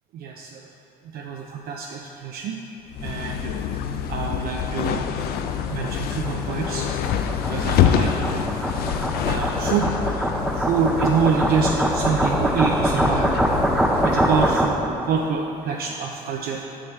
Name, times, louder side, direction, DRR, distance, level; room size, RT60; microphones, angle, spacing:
voice 1, 0.1-0.7 1.1-2.6 3.0-3.6 4.1-5.1 5.7-6.9 7.5-8.1 9.2-9.9 10.6-13.4 14.0-14.8 15.0-16.6, right 6 dB, 65° right, 1 dB, 0.5 m, -26 dB
sound 1, 2.9-14.6, left 8 dB, 65° left, 0.4 m, -26 dB
sound 2, 5.1-15.0, right 1 dB, 5° right, 0.4 m, -24 dB
7.3 x 6.4 x 3.3 m, 2.9 s
cardioid pair, 110°, 17 cm